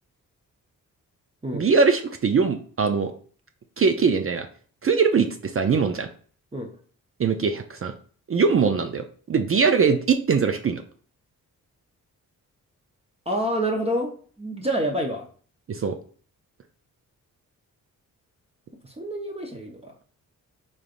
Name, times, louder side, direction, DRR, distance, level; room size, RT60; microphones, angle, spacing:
voice 1, 1.5-3.1 3.8-4.5 4.8-6.1 7.2-7.9 8.3-10.8 15.7-16.0, right 5 dB, 40° right, 6 dB, 0.5 m, -21 dB
voice 2, 13.3-14.1 14.4-15.3 18.8-19.9, right 1 dB, 20° right, 0 dB, 0.8 m, -27 dB
3.9 x 3.3 x 2.5 m, 0.44 s
cardioid pair, 60°, 35 cm